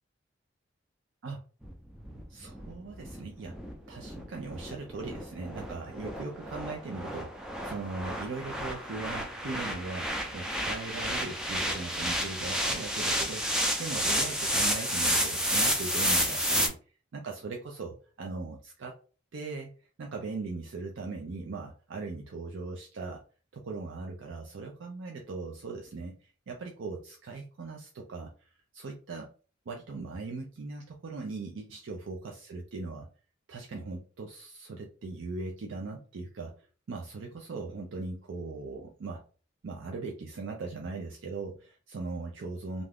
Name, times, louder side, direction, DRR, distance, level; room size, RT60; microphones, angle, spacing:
sound 1, 1.6-16.7, equal, 5° right, 0.4 m, -31 dB
voice 1, 2.3-3.6 3.9-16.8 17.1-19.0 19.3-19.7 20.0-23.2 23.5-29.3 29.7-33.1 33.5-39.2 39.6-42.8, right 3 dB, 80° right, 1 dB, 0.5 m, -39 dB
2.6 x 2.3 x 3.3 m, 0.38 s
head